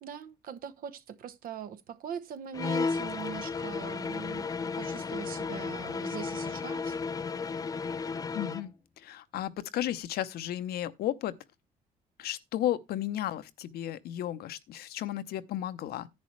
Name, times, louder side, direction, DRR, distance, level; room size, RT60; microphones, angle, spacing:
voice 1, 0.0-7.0, right 7 dB, 60° right, 0.9 m, -41 dB
sound 1, 2.5-8.7, left 4 dB, 20° left, 0.4 m, -34 dB
voice 2, 8.3-11.3 12.2-16.1, left 12 dB, 70° left, 0.8 m, -34 dB
10.5 x 8.3 x 3.2 m
cardioid pair, 110°, 17 cm